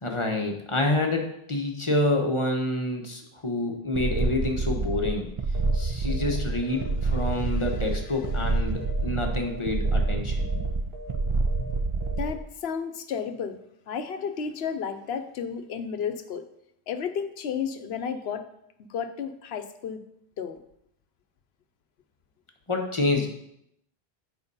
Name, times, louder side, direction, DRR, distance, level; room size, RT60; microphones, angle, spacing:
voice 1, 0.0-5.3 5.7-10.5 22.7-23.3, left 2 dB, 30° left, 2 dB, 1.0 m, -28 dB
sound 1, 3.9-12.4, right 3 dB, 40° right, 0.5 m, -27 dB
sound 2, 5.5-5.8 6.1-6.4 6.6-8.0 8.2-8.5 8.8-9.1 9.3-9.6 9.9-10.1 10.4-10.7 10.9-11.2 11.5-11.7 12.0-12.3, equal, 65° right, 1.4 m, -43 dB
voice 2, 12.2-13.6 13.9-16.5 16.9-18.5 18.9-20.0 20.4-20.6, left 7 dB, 85° left, 9 dB, 1.0 m, -32 dB
8.0 x 4.6 x 5.5 m, 0.76 s
omnidirectional pair, 1.0 m